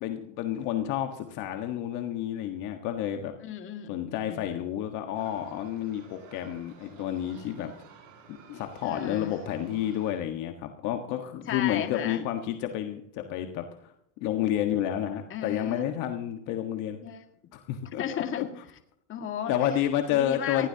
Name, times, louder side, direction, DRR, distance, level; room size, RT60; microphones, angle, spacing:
voice 1, 0.0-3.3 3.9-7.7 8.5-13.9 14.2-17.0 17.5-18.0 18.4-18.5 19.5-20.7, left 11 dB, 50° left, 5 dB, 1.5 m, -30 dB
voice 2, 3.4-4.4 8.8-9.3 11.5-12.3 15.3-15.9 17.0-17.2 18.0-18.5 19.1-19.5 20.1-20.7, left 9 dB, 30° left, 5 dB, 2.0 m, -35 dB
sound 1, 5.1-10.1, right 5 dB, 75° right, 7.1 m, -53 dB
20.5 x 15.5 x 2.9 m, 0.72 s
supercardioid pair, 145°, 39 cm